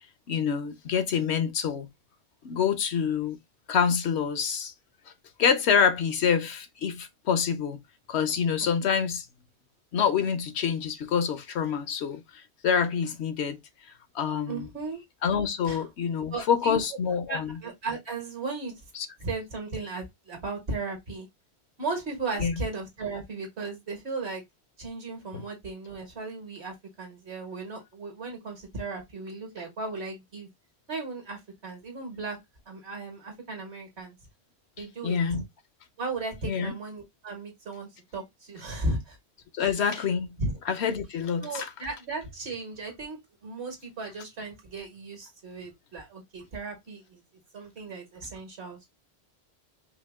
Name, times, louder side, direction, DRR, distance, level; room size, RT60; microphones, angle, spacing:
voice 1, 0.3-1.9 2.4-3.4 3.7-4.7 5.4-7.8 8.1-9.2 9.9-12.2 12.6-13.6 14.1-14.7 15.2-17.5 19.0-19.1 22.4-22.5 25.3-25.4 35.0-35.4 36.4-36.7 39.5-40.3 40.7-41.7, left 7 dB, 80° left, 1.0 m, -26 dB
voice 2, 14.5-15.0 15.6-15.9 16.3-16.8 17.3-18.8 19.2-21.3 21.8-24.4 24.8-30.5 30.9-32.4 32.6-34.1 34.8-35.4 36.0-39.2 39.6-40.1 40.4-40.5 41.4-47.2 47.5-48.9, right 3 dB, 80° right, 1.8 m, -36 dB
5.0 x 2.1 x 3.4 m
omnidirectional pair, 1.1 m